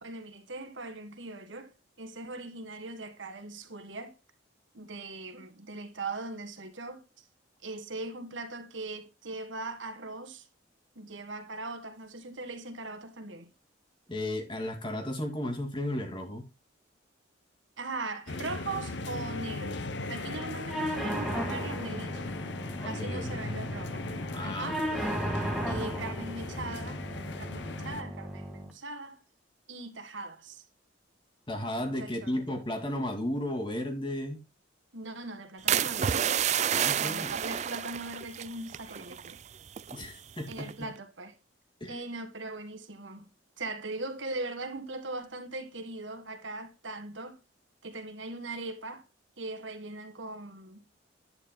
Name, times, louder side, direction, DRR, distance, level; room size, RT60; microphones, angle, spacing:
voice 1, 0.0-1.7 2.0-4.1 4.7-7.3 7.6-10.5 11.0-13.5 17.8-22.3 22.8-24.0 24.4-24.8 25.7-27.0 27.4-29.2 29.7-30.7 32.0-32.4 34.9-36.2 37.0-39.4 40.5-41.4 41.9-43.3 43.6-47.4 47.8-49.0 49.4-50.8, right 2 dB, 70° right, 1.7 m, -40 dB
voice 2, 14.1-16.5 22.8-23.4 24.3-25.0 31.5-34.4 36.7-37.3 39.9-40.9 41.8-42.0, left 1 dB, 25° left, 2.2 m, -34 dB
sound 1, 18.3-28.0, left 3 dB, 60° left, 0.8 m, -38 dB
sound 2, 20.7-28.7, right 1 dB, ahead, 1.9 m, -35 dB
sound 3, 35.7-39.4 39.7-40.1 40.5-40.8, right 9 dB, 35° right, 0.3 m, -30 dB
11.0 x 8.8 x 2.2 m
head